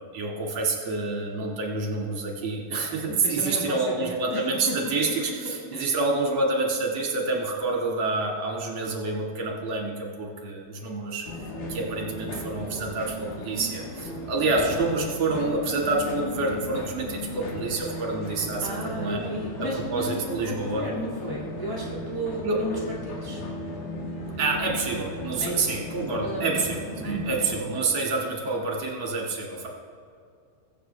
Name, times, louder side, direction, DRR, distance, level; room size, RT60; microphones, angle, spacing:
voice 1, 0.1-11.3 11.7-20.8 22.4-22.6 24.4-29.7, right 3 dB, 40° right, -1 dB, 2.3 m, -28 dB
voice 2, 3.1-4.9 5.4-6.0 18.6-23.4 25.4-25.8 26.2-26.7 27.0-27.4, equal, 15° left, -6 dB, 0.6 m, -34 dB
sound 1, 11.2-27.7, left 1 dB, 70° left, 3.3 m, -36 dB
22.5 x 8.0 x 3.4 m, 2.3 s
omnidirectional pair, 4.4 m